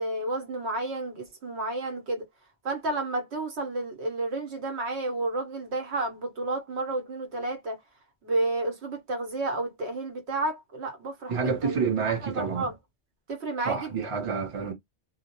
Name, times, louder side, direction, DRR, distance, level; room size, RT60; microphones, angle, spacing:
voice 1, 0.0-2.2 2.6-7.8 8.2-11.8 12.2-12.7 13.3-14.0, right 2 dB, 75° right, 1.1 m, -31 dB
voice 2, 11.3-12.7 13.7-14.7, right 5 dB, 35° right, 0.8 m, -28 dB
2.4 x 2.0 x 2.9 m
omnidirectional pair, 1.1 m